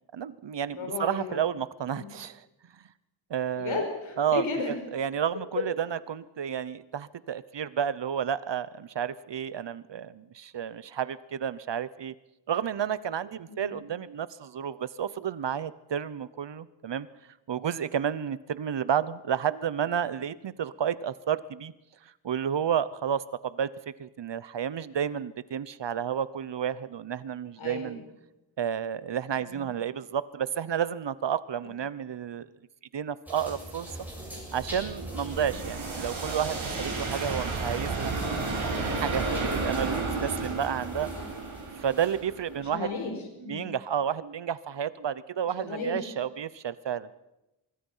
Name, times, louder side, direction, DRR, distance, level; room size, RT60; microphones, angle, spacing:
voice 1, 0.1-2.4 2.7-2.8 3.3-3.8 4.2-12.1 12.5-17.1 17.5-21.7 22.2-23.7 24.0-28.0 28.6-32.6 32.9-33.9 34.5-38.1 38.9-41.1 41.8-42.9 43.4-47.1, right 8 dB, 65° right, 17 dB, 0.9 m, -31 dB
voice 2, 0.7-1.5 1.9-2.1 3.5-4.7 13.5-13.8 27.5-28.0 29.3-29.7 41.1-41.2 42.6-43.7 45.4-46.1, left 3 dB, 90° left, 3 dB, 4.9 m, -35 dB
sound 1, 33.2-42.4, right 1 dB, 5° right, 7.4 m, -42 dB
sound 2, 33.9-42.8, right 3 dB, 80° right, 7.2 m, -33 dB
24.5 x 22.5 x 5.6 m, 0.95 s
wide cardioid pair, 145°, 47 cm